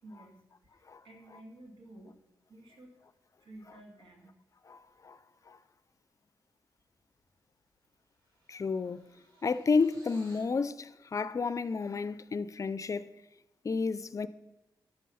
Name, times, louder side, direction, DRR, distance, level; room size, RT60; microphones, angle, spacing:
voice 1, 0.0-2.2 2.5-2.9 3.4-4.3, right 1 dB, 85° right, 2.3 m, -53 dB
sound 1, 7.4-7.6 7.9-10.6, right 1 dB, 55° right, 4.7 m, -61 dB
voice 2, 8.5-9.0 9.4-13.1 13.6-14.3, left 4 dB, 40° left, 0.4 m, -31 dB
11.0 x 7.5 x 5.6 m
cardioid pair, 90°, 8 cm